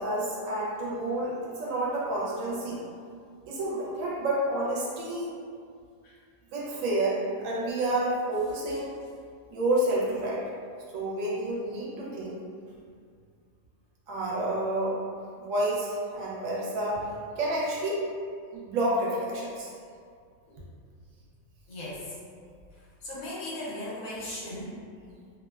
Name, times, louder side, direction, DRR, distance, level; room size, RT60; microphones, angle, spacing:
voice 1, 0.0-2.8 3.5-5.3 6.5-8.9 9.5-10.4 10.9-12.4 14.1-18.1 18.5-19.7, right 1 dB, 75° right, -5 dB, 1.0 m, -29 dB
voice 2, 21.7-22.1 23.0-24.8, left 1 dB, 80° left, -7 dB, 1.2 m, -37 dB
2.8 x 2.1 x 2.3 m, 2.2 s
omnidirectional pair, 1.4 m